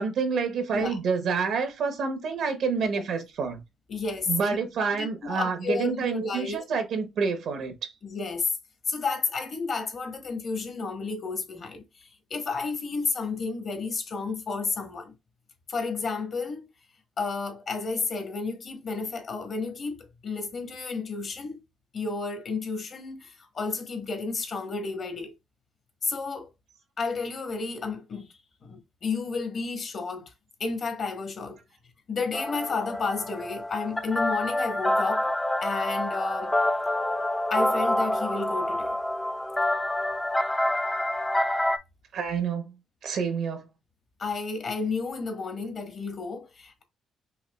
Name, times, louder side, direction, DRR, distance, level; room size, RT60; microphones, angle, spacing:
voice 1, 0.0-3.6 4.3-7.9 42.1-42.8 43.0-43.7, right 5 dB, 75° right, 1.0 m, -28 dB
voice 2, 3.9-6.6 8.0-8.5 8.9-11.8 12.3-15.1 15.7-16.7 17.2-21.6 21.9-25.3 26.0-26.5 27.0-28.3 28.6-30.3 30.6-31.6 32.1-35.3 35.6-36.5 37.5-39.0 44.2-46.8, left 4 dB, 50° left, 1.3 m, -31 dB
sound 1, 32.3-41.8, left 1 dB, 10° left, 0.5 m, -27 dB
5.6 x 2.4 x 2.3 m
cardioid pair, 90°, 0 cm